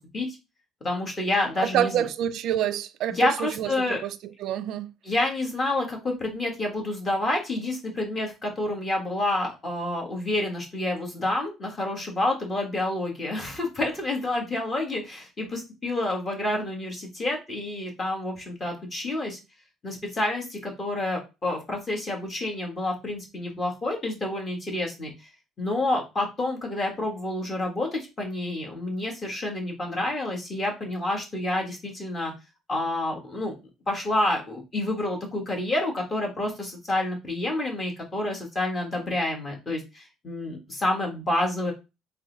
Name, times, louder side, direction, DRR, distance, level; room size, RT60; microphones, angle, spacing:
voice 1, 0.8-1.9 3.1-4.0 5.0-19.4 19.8-25.1 25.6-32.3 32.7-33.5 33.9-41.7, left 2 dB, 25° left, 1.5 m, -28 dB
voice 2, 1.6-4.1 4.4-4.9, right 10 dB, 65° right, 0.4 m, -27 dB
4.0 x 2.1 x 3.9 m
cardioid pair, 125°, 0 cm